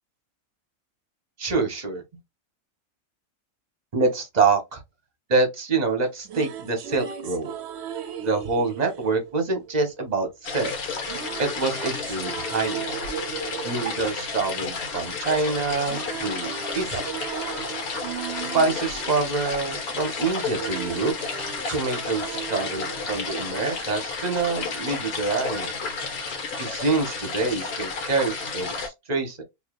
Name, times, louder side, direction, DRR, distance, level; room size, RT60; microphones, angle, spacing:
voice 1, 1.4-2.0 3.9-4.8 5.3-7.5 8.2-10.7 11.4-12.9 13.6-16.5 16.7-17.1 18.5-21.1 21.7-25.7 26.6-29.4, right 4 dB, 35° right, 0.9 m, -26 dB
sound 1, 6.0-10.2 11.0-15.3 15.5-24.1, right 8 dB, 60° right, 0.8 m, -37 dB
sound 2, 10.4-28.9, left 4 dB, 80° left, 1.7 m, -32 dB
4.7 x 3.1 x 2.3 m
omnidirectional pair, 1.5 m